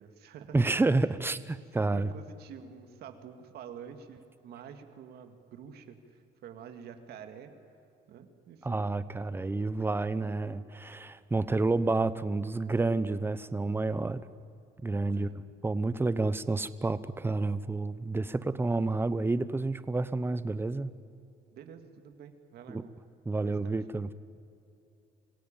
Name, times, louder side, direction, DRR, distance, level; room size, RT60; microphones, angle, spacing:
voice 1, 0.0-0.6 1.6-1.7 1.9-7.5 8.1-8.9 15.1-15.4 21.5-22.9 23.3-23.8, right 7 dB, 70° right, 7 dB, 2.2 m, -48 dB
voice 2, 0.5-2.1 8.6-14.2 14.8-20.9 22.7-22.8 23.3-24.1, right 3 dB, 15° right, 15 dB, 0.9 m, -29 dB
26.0 x 17.0 x 9.0 m, 2.6 s
cardioid pair, 110°, 17 cm